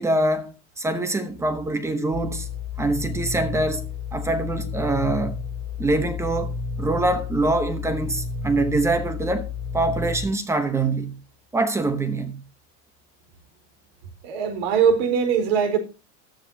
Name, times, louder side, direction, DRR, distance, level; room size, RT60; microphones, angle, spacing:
voice 1, 0.0-2.5 2.8-3.8 4.1-5.4 5.8-9.5 9.7-11.1 11.5-12.4, right 2 dB, 10° right, 0.9 m, -24 dB
sound 1, 2.1-10.3, left 5 dB, 25° right, 3.0 m, -31 dB
voice 2, 14.2-15.8, right 7 dB, 60° right, 4.1 m, -21 dB
14.0 x 13.5 x 2.8 m
cardioid pair, 175°, 35 cm